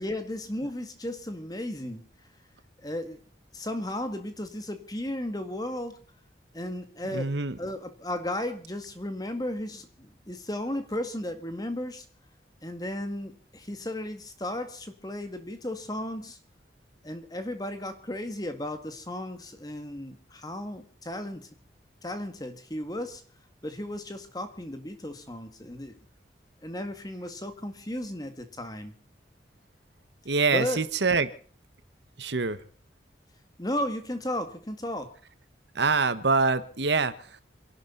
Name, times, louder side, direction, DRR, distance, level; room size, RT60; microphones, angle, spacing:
voice 1, 0.0-2.0 2.8-3.2 3.5-6.0 6.5-7.3 7.6-12.0 12.6-16.4 17.0-21.5 22.0-23.2 23.6-26.0 26.6-28.9 30.5-30.8 33.6-35.1, left 1 dB, 20° left, 8 dB, 2.0 m, -34 dB
voice 2, 7.1-7.6 30.2-31.3 32.2-32.6 35.7-37.1, right 4 dB, 75° right, 13 dB, 1.3 m, -25 dB
27.0 x 11.5 x 4.0 m, 0.43 s
head